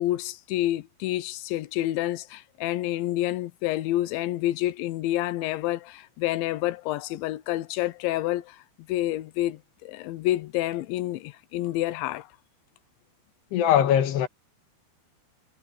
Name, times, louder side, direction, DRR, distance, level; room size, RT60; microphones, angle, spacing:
voice 1, 0.0-8.6 8.9-12.3, left 15 dB, 85° left, 3.2 m, -28 dB
voice 2, 13.5-14.3, left 10 dB, 70° left, 3.6 m, -21 dB
omnidirectional pair, 5.2 m